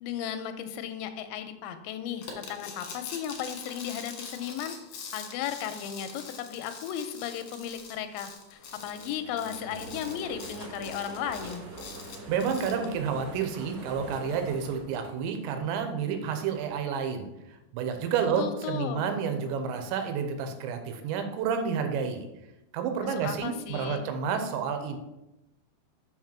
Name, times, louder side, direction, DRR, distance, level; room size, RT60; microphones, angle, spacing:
voice 1, 0.0-4.7 5.1-11.6 18.4-19.1 23.0-24.1, left 9 dB, 85° left, 9 dB, 2.8 m, -35 dB
sound 1, 2.2-12.9, left 5 dB, 70° left, 1.8 m, -44 dB
sound 2, 8.5-15.8, right 2 dB, 60° right, 1.7 m, -44 dB
voice 2, 12.3-17.3 17.7-22.3 22.7-25.0, right 6 dB, 85° right, 6 dB, 3.1 m, -30 dB
6.5 x 6.2 x 4.4 m, 0.93 s
omnidirectional pair, 5.2 m